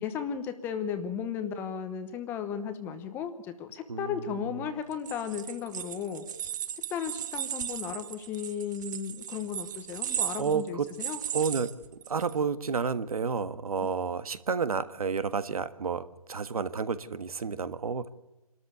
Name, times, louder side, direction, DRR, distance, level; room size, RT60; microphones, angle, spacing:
voice 1, 0.0-6.2 6.9-11.2, left 7 dB, 10° left, 9 dB, 1.0 m, -35 dB
voice 2, 3.9-4.7 10.4-10.8 11.3-11.7 12.1-18.1, right 5 dB, 70° right, 13 dB, 1.5 m, -31 dB
sound 1, 4.9-12.4, right 10 dB, 30° right, 0.8 m, -36 dB
25.5 x 13.0 x 8.5 m, 1.0 s
hypercardioid pair, 160°, 19 cm